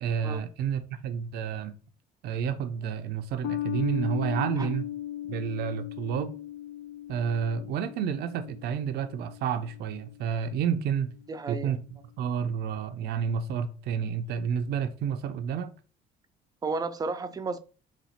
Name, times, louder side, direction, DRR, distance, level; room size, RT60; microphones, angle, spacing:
voice 1, 0.0-1.7 2.2-4.9 5.3-6.3 7.1-11.1 11.5-11.8 12.2-15.7, right 7 dB, 75° right, 0.5 m, -30 dB
sound 1, 3.4-10.2, left 12 dB, 80° left, 0.4 m, -37 dB
voice 2, 11.3-11.8 16.6-17.6, right 4 dB, 20° right, 0.4 m, -32 dB
4.2 x 2.4 x 4.1 m
cardioid pair, 110°, 17 cm